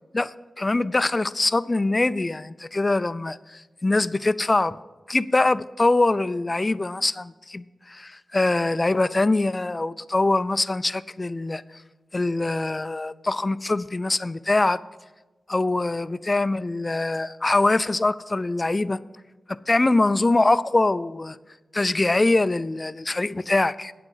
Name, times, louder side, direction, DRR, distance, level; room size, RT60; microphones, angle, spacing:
voice 1, 0.1-4.8 5.1-11.6 12.1-14.8 15.5-19.0 19.5-21.4 21.7-23.9, left 2 dB, 25° left, 16 dB, 0.3 m, -23 dB
8.7 x 6.2 x 8.3 m, 1.2 s
wide cardioid pair, 115°, 0 cm